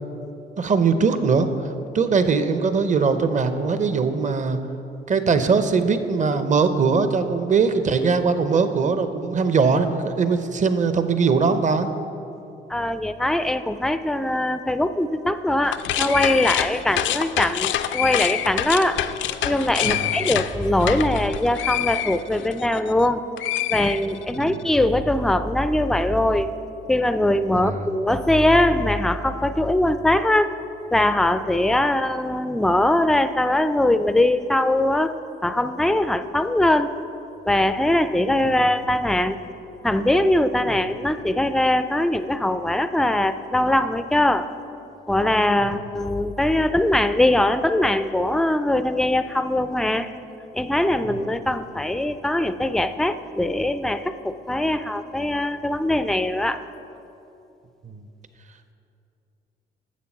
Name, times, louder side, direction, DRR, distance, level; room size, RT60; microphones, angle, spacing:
voice 1, 0.6-1.5 1.9-4.6 5.1-11.9 19.8-20.1 24.3-24.6 27.5-27.9 57.8-58.0, right 5 dB, 40° right, 10 dB, 0.7 m, -21 dB
voice 2, 12.7-19.1 19.4-23.2 23.7-26.5 26.9-30.6 30.9-35.2 35.4-37.0 37.4-39.4 39.8-44.5 45.1-50.1 50.5-56.6, left 1 dB, ahead, 11 dB, 0.3 m, -21 dB
sound 1, 15.6-23.1 23.4-24.5, left 12 dB, 75° left, 0.4 m, -26 dB
8.3 x 7.1 x 5.9 m, 2.8 s
cardioid pair, 90°, 20 cm